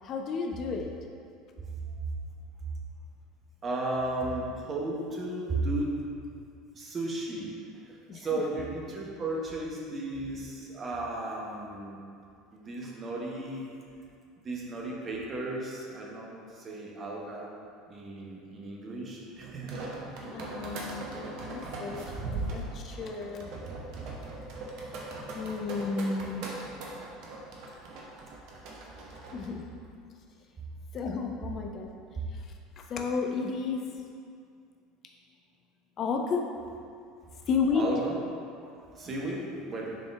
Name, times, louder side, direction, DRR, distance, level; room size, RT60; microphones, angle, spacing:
voice 1, 0.0-0.9 8.1-8.4 20.2-23.5 25.3-26.5 29.3-29.7 30.9-31.9 32.3-32.4 32.8-33.9 36.0-36.5 37.5-37.9, left 5 dB, 40° left, 2 dB, 0.5 m, -32 dB
voice 2, 3.6-6.0 6.7-7.5 7.7-12.0 12.5-13.7 14.4-17.5 17.9-19.7 24.9-25.3 37.7-38.2 38.6-40.0, right 2 dB, 30° right, -2 dB, 1.2 m, -34 dB
sound 1, 19.4-29.5, right 2 dB, 55° right, 0.9 m, -39 dB
6.4 x 4.4 x 3.4 m, 2.3 s
figure-of-eight pair, 70°, 0 cm